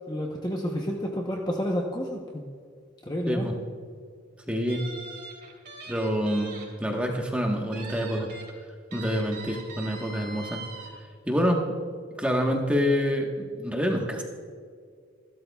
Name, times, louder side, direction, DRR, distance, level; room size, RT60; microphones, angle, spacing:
voice 1, 0.1-2.4 3.0-3.5, equal, 20° left, 0 dB, 0.9 m, -30 dB
voice 2, 3.2-3.6 4.5-4.8 5.9-8.3 8.9-10.6 11.3-11.6 12.2-14.2, equal, 5° right, 0 dB, 1.3 m, -27 dB
sound 1, 4.7-6.7 7.0-7.1 7.7-8.5 8.9-10.9, right 3 dB, 45° right, 3.2 m, -42 dB
27.5 x 12.5 x 2.4 m, 2.1 s
head